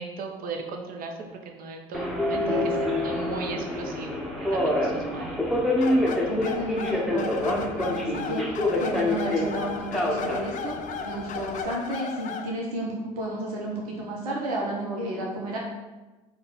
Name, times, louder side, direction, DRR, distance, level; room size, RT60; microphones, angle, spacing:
voice 1, 0.0-5.4, right 4 dB, 50° right, 3 dB, 0.7 m, -37 dB
Subway metro underground, 1.9-11.6, left 1 dB, ahead, 0.7 m, -27 dB
sound 1, 5.8-12.5, left 6 dB, 45° left, 0.4 m, -35 dB
voice 2, 6.3-10.7 11.0-15.6, right 1 dB, 85° right, -2 dB, 0.7 m, -32 dB
4.0 x 2.3 x 3.9 m, 1.2 s
hypercardioid pair, 65°, 18 cm